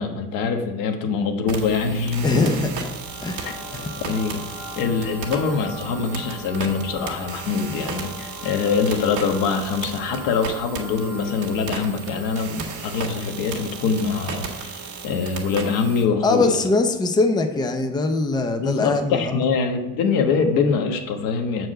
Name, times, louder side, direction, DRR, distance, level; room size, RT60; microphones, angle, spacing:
voice 1, 0.0-2.5 3.4-3.5 4.0-4.4 4.8-16.6 18.6-21.7, left 5 dB, 90° left, 5 dB, 1.2 m, -24 dB
sound 1, 1.5-16.0, right 5 dB, 65° right, 1.8 m, -35 dB
voice 2, 2.2-2.9 3.2-3.9 16.2-19.4, left 3 dB, 15° left, 6 dB, 0.6 m, -22 dB
sound 2, 2.9-11.7, left 2 dB, 5° right, 2.3 m, -41 dB
7.5 x 4.7 x 6.5 m, 1.0 s
cardioid pair, 145°, 32 cm